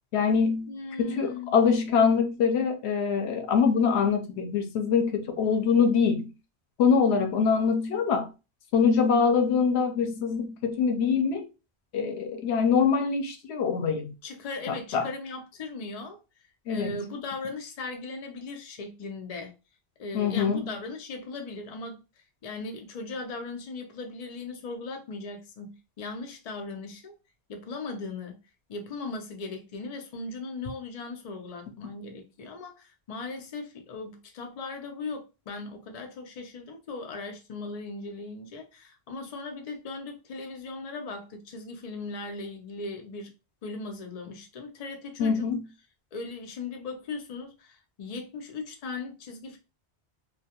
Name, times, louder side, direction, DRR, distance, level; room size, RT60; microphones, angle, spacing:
voice 1, 0.1-0.7 1.0-6.3 6.8-8.3 8.7-11.5 11.9-14.1 14.7-15.1 16.7-17.0 20.1-20.7 45.2-45.6, left 6 dB, 90° left, 0.9 m, -24 dB
voice 2, 0.7-1.7 14.2-16.2 16.7-19.5 20.0-22.0 22.4-27.1 27.5-28.4 28.7-43.3 43.6-45.4 46.1-49.6, left 3 dB, 45° left, 0.5 m, -38 dB
2.2 x 2.2 x 2.8 m
omnidirectional pair, 1.1 m